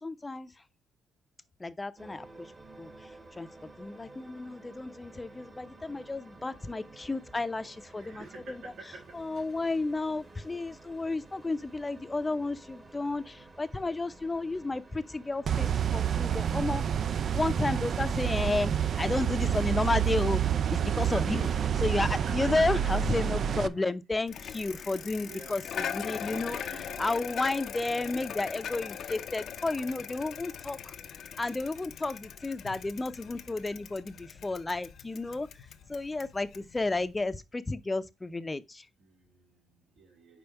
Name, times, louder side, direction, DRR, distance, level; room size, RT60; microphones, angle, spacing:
voice 1, 0.0-0.5 1.6-2.2 2.8-2.9 3.4-3.5 3.8-8.2 9.2-16.8 17.3-18.7 19.0-20.4 20.7-21.4 21.8-22.1 22.3-25.6 25.9-26.6 27.0-30.8 31.4-35.5 35.9-38.8, left 2 dB, 20° left, 0.6 m, -32 dB
sound 1, 2.0-21.9, right 2 dB, 30° right, 1.4 m, -52 dB
voice 2, 7.7-9.6 20.7-23.0 23.5-23.9 24.5-27.3 33.2-33.3 39.0-40.4, right 3 dB, 75° right, 2.2 m, -49 dB
sound 2, 15.5-23.7, right 9 dB, 55° right, 0.4 m, -28 dB
Bicycle, 24.3-37.4, left 8 dB, 65° left, 0.6 m, -41 dB
5.3 x 4.5 x 4.5 m
cardioid pair, 90°, 0 cm